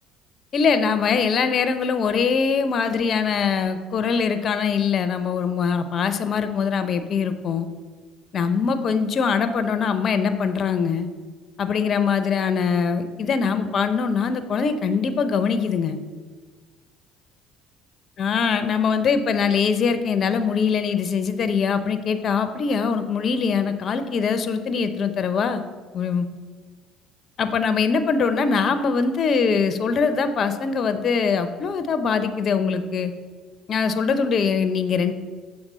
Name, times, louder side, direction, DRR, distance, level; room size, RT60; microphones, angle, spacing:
voice 1, 0.5-7.7 8.3-11.1 11.6-16.0 18.2-25.6 25.9-26.3 27.4-33.1 33.7-35.1, left 5 dB, 50° left, 10 dB, 0.6 m, -22 dB
6.6 x 3.5 x 6.1 m, 1.4 s
hypercardioid pair, 65°, 0 cm